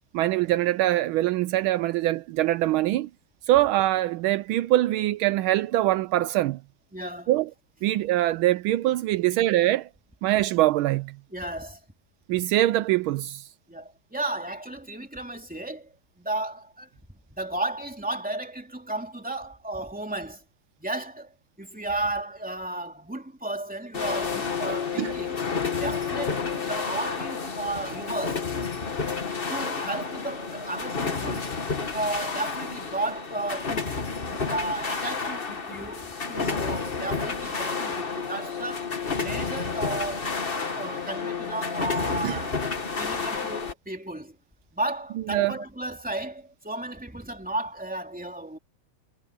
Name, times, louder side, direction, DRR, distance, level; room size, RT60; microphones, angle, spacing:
voice 1, 0.1-3.1 3.5-6.6 7.3-7.5 7.8-9.9 10.2-11.2 12.3-13.5 25.0-25.1 42.2-42.4 45.3-45.5, right 15 dB, 80° right, 1.4 m, -23 dB
voice 2, 6.9-7.3 11.3-11.8 13.7-16.9 17.3-20.4 20.8-25.4 25.8-28.5 29.5-31.6 31.9-34.0 34.3-40.4 40.7-42.6 43.0-44.4 44.7-48.6, right 2 dB, 5° right, 2.7 m, -34 dB
sound 1, 23.9-43.7, left 5 dB, 30° left, 1.4 m, -30 dB
omnidirectional pair, 2.3 m